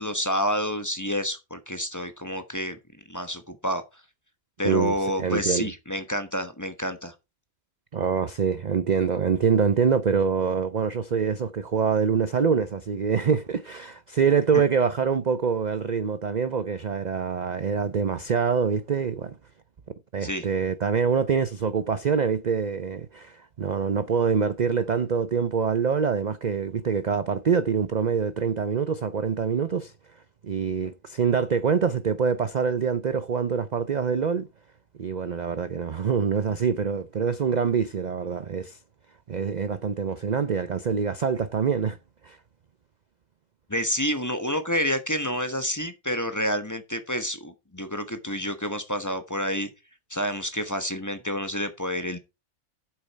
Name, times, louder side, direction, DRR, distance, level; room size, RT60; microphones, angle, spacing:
voice 1, 0.0-2.8 3.1-3.8 4.6-7.1 14.5-14.6 20.2-20.5 43.7-49.7 50.1-52.2, equal, 15° left, 1.1 m, -29 dB
voice 2, 4.6-5.7 7.9-19.3 20.1-29.9 30.4-34.5 35.0-38.8 39.3-42.0 42.2-42.4, right 6 dB, 50° right, 0.5 m, -25 dB
8.7 x 7.9 x 4.6 m
omnidirectional pair, 1.5 m